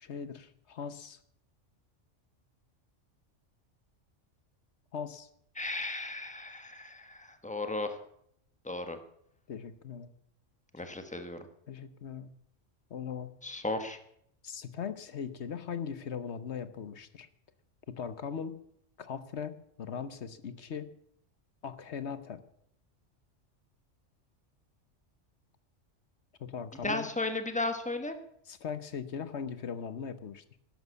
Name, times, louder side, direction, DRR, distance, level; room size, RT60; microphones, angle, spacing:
voice 1, 0.0-1.2 4.9-5.3 9.5-10.1 11.7-12.3 12.9-13.3 14.4-17.3 18.0-18.5 19.0-20.9 21.6-22.4 26.4-27.1 28.5-30.4, left 7 dB, 65° left, 13 dB, 1.2 m, -39 dB
voice 2, 5.6-8.0 8.6-9.0 10.7-11.5 13.4-14.0 26.8-28.2, left 2 dB, 5° left, 7 dB, 1.3 m, -35 dB
12.5 x 11.0 x 8.3 m, 0.70 s
omnidirectional pair, 1.3 m